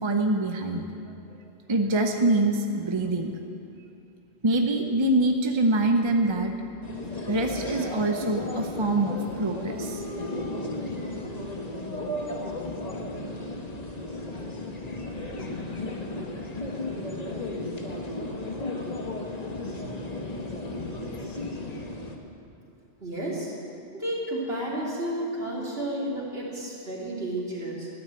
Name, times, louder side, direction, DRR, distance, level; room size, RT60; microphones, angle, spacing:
voice 1, 0.0-0.8 1.7-3.3 4.4-6.5 7.3-10.0, right 2 dB, 30° right, 4 dB, 0.7 m, -24 dB
sound 1, 6.8-22.2, left 2 dB, 35° left, 1.3 m, -34 dB
voice 2, 23.0-23.5 23.9-27.9, right 1 dB, 60° right, -5 dB, 3.2 m, -31 dB
13.0 x 9.9 x 7.7 m, 2.6 s
omnidirectional pair, 1.1 m